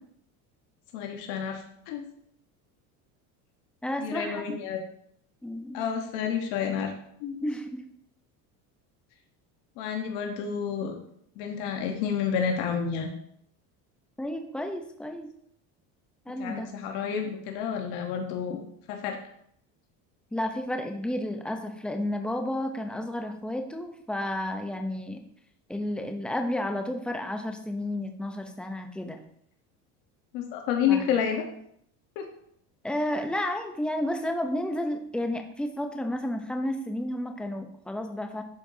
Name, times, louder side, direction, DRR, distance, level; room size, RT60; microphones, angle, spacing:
voice 1, 0.9-2.0 4.0-4.8 5.7-6.9 7.2-7.4 9.8-11.0 11.4-13.1 16.4-18.6 18.9-19.2 30.3-31.4 32.2-32.3, left 7 dB, 75° left, 3 dB, 1.1 m, -29 dB
voice 2, 3.8-4.6 5.4-5.9 7.4-7.8 14.2-15.3 16.3-16.7 20.3-25.2 25.7-29.2 30.9-31.1 32.8-38.4, left 1 dB, ahead, 4 dB, 0.6 m, -32 dB
11.0 x 4.6 x 2.7 m, 0.69 s
cardioid pair, 130°, 39 cm